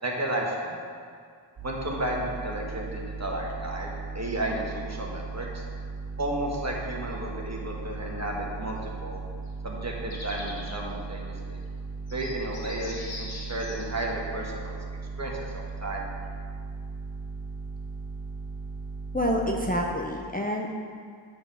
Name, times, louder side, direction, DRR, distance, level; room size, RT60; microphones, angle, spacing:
voice 1, 0.0-0.8 1.6-5.6 6.2-9.2 9.6-11.6 12.1-14.8 15.2-15.4 15.8-16.1, right 1 dB, 35° right, -2 dB, 1.4 m, -33 dB
sound 1, 1.6-19.9, right 4 dB, 70° right, 1.9 m, -37 dB
sound 2, 9.5-9.6 10.1-10.8 11.6-11.7 12.1-13.9, left 2 dB, 50° left, 1.2 m, -42 dB
voice 2, 19.1-20.7, equal, 20° left, -1 dB, 0.6 m, -27 dB
8.5 x 3.7 x 5.7 m, 2.1 s
wide cardioid pair, 50°, 46 cm